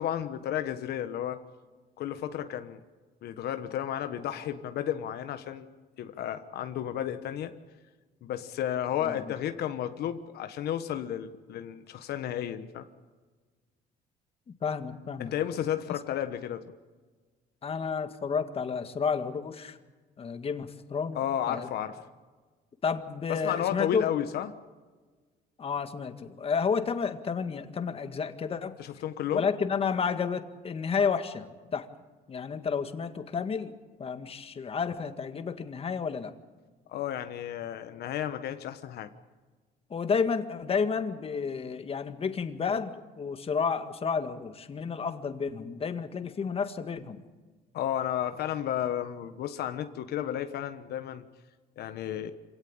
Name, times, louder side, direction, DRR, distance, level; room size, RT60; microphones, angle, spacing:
voice 1, 0.0-1.4 2.0-2.8 3.2-5.7 6.0-7.5 8.2-12.9 15.2-16.6 21.1-22.0 23.3-24.5 28.8-29.5 36.9-39.1 47.7-51.2 51.8-52.3, left 10 dB, 70° left, 8 dB, 1.3 m, -32 dB
voice 2, 14.6-15.3 17.6-19.8 20.2-21.2 21.5-21.7 22.8-24.1 25.6-28.8 29.3-31.9 32.3-33.7 34.0-36.3 39.9-47.2, left 6 dB, 35° left, 9 dB, 1.8 m, -31 dB
26.5 x 17.5 x 8.8 m, 1.4 s
cardioid pair, 110°, 17 cm